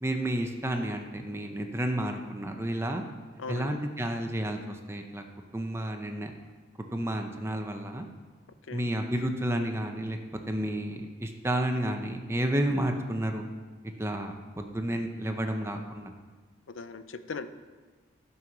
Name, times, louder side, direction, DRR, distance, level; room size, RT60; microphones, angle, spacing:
voice 1, 0.0-3.0 3.5-5.2 5.5-6.3 6.9-8.1 8.7-10.2 10.5-13.4 14.0-16.1, right 1 dB, 15° right, 4 dB, 0.8 m, -31 dB
voice 2, 3.4-3.8 8.7-8.9 16.7-17.5, left 4 dB, 90° left, 10 dB, 0.6 m, -38 dB
14.5 x 5.6 x 6.1 m, 1.4 s
head